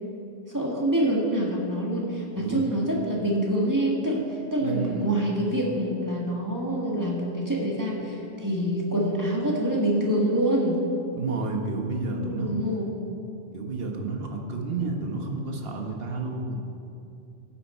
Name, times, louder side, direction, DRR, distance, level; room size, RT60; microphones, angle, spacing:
voice 1, 0.5-10.8 12.0-12.9, right 1 dB, 15° right, -3 dB, 1.8 m, -26 dB
voice 2, 4.6-5.1 11.1-12.5 13.5-16.6, right 3 dB, 60° right, 2 dB, 1.4 m, -31 dB
15.0 x 8.7 x 4.4 m, 2.7 s
omnidirectional pair, 1.1 m